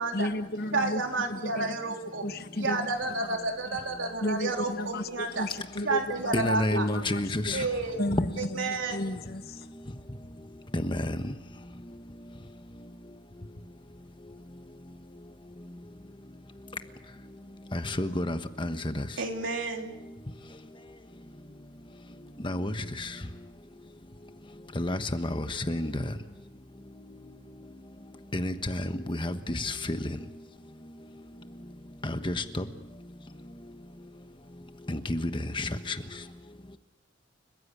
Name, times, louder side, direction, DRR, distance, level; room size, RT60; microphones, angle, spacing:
voice 1, 0.1-1.8 2.2-2.9 3.3-3.4 4.2-7.7 8.0-9.7, left 1 dB, 50° left, 1.2 m, -34 dB
voice 2, 0.7-2.2 2.6-5.5 5.8-6.9 7.5-8.1 8.4-9.0 19.2-20.0, right 3 dB, 85° right, 3.5 m, -31 dB
voice 3, 6.3-7.6 10.7-11.2 17.7-19.0 22.4-23.1 24.7-26.1 28.3-30.2 32.0-32.6 34.9-35.9, left 1 dB, 25° left, 1.2 m, -30 dB
29.5 x 15.5 x 8.4 m
head